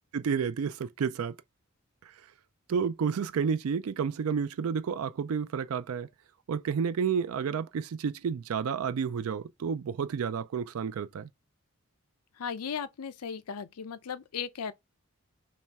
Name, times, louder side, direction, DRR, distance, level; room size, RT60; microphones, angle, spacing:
voice 1, 0.1-1.3 2.7-6.1 6.5-11.3, right 6 dB, 75° right, 0.4 m, -30 dB
voice 2, 12.4-14.7, left 7 dB, 85° left, 0.5 m, -36 dB
4.2 x 3.2 x 3.4 m
head